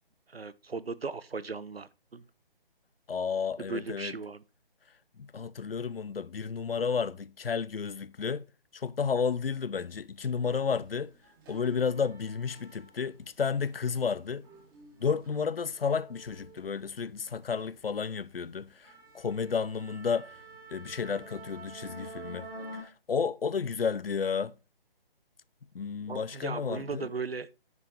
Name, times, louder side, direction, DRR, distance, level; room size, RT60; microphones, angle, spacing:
voice 1, 0.3-2.2 3.7-4.4 26.1-27.5, right 4 dB, 90° right, 0.7 m, -37 dB
voice 2, 3.1-4.1 5.2-8.4 8.7-11.1 11.5-14.5 15.0-20.3 20.7-22.5 22.7-24.5 25.7-27.1, left 6 dB, 75° left, 0.6 m, -32 dB
sound 1, 10.3-10.5 10.8-13.2 13.6-17.3 17.7-18.0 18.4-18.5 18.8-22.8, right 1 dB, 20° right, 2.1 m, -48 dB
9.4 x 5.3 x 4.0 m
figure-of-eight pair, 145°, 29 cm